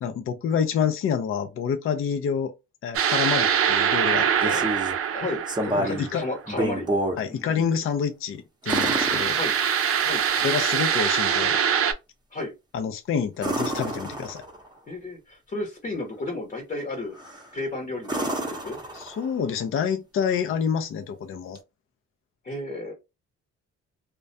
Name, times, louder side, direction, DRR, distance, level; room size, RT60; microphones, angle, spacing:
voice 1, 0.0-2.5 2.8-4.7 5.8-6.2 7.2-9.4 10.4-11.6 12.7-14.4 18.9-21.6, left 7 dB, 45° left, 0.5 m, -27 dB
sound 1, 2.9-6.4 8.7-11.9, right 8 dB, 50° right, 0.5 m, -23 dB
sound 2, 4.1-5.0 5.5-6.1 6.5-7.2 8.7-9.9 13.4-14.7 17.2-17.5 18.0-19.4 21.6-21.7, right 1 dB, 15° right, 0.7 m, -29 dB
voice 2, 5.1-6.9 7.3-7.4 9.3-9.6 10.0-10.2 12.3-12.5 14.9-17.2 17.5-18.8 22.4-22.9, left 2 dB, 30° left, 0.8 m, -33 dB
2.3 x 2.2 x 2.6 m
cardioid pair, 90°, 30 cm